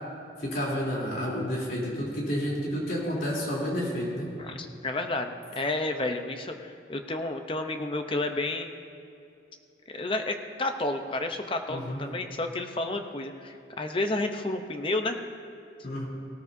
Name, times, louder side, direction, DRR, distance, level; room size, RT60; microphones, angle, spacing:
voice 1, 0.4-4.3 11.7-12.0 15.8-16.0, equal, 55° left, -4 dB, 3.4 m, -30 dB
voice 2, 4.4-8.7 9.9-15.2, left 2 dB, 30° left, 6 dB, 0.7 m, -31 dB
18.0 x 13.0 x 2.7 m, 2.6 s
head